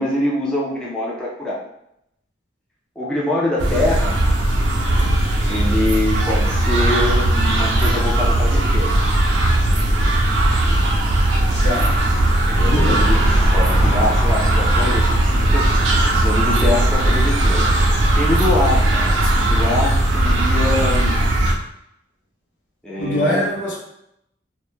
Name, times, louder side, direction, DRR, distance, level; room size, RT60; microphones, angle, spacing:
voice 1, 0.0-1.6 3.0-4.2 5.4-9.0 12.5-17.8 18.1-21.2 22.8-23.5, left 1 dB, 5° left, -5 dB, 0.3 m, -24 dB
sound 1, 3.6-21.5, right 1 dB, 80° right, 0.5 m, -17 dB
sound 2, 6.2-6.3 6.9-7.0 11.5-11.6 12.9-15.1, left 1 dB, 40° left, 0.9 m, -30 dB
voice 2, 11.6-11.9 12.6-13.0 23.0-23.8, left 1 dB, 65° left, -4 dB, 0.7 m, -22 dB
2.1 x 2.0 x 3.0 m, 0.78 s
head